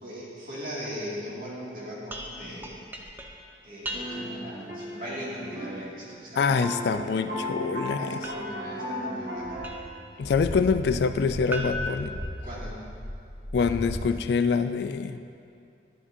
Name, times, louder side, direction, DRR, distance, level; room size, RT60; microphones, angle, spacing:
voice 1, 0.0-2.9 3.6-6.5 8.0-9.6 12.4-12.8, equal, 50° right, -7 dB, 2.1 m, -39 dB
sound 1, 2.1-4.5 8.2-10.1 11.5-13.0, equal, 10° right, 0.4 m, -39 dB
sound 2, 3.9-5.9 6.1-6.2 6.6-9.7, left 1 dB, 75° right, 1.1 m, -35 dB
voice 2, 6.4-8.3 10.2-12.2 13.5-15.2, left 5 dB, 70° left, 10 dB, 0.3 m, -25 dB
sound 3, 9.4-14.0, left 1 dB, 30° left, 1.3 m, -37 dB
11.0 x 7.3 x 2.7 m, 2.5 s
head